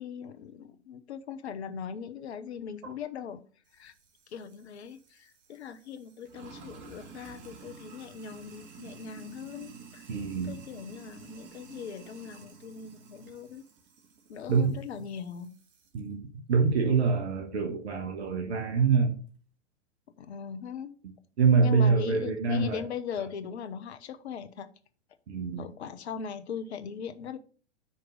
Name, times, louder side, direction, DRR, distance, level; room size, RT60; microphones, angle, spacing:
voice 1, 0.0-3.4 3.7-3.9 4.3-10.1 10.4-13.6 14.3-15.6 20.2-20.9 21.6-24.7 25.6-27.4, left 7 dB, 60° left, 1.0 m, -40 dB
Sink (filling or washing), 3.7-16.0, right 5 dB, 30° right, 1.6 m, -51 dB
voice 2, 10.1-10.6 14.5-14.8 15.9-16.2 16.5-19.2 21.4-22.8 25.3-25.7, right 5 dB, 60° right, 1.4 m, -25 dB
5.8 x 4.5 x 6.2 m
figure-of-eight pair, 100°, 36 cm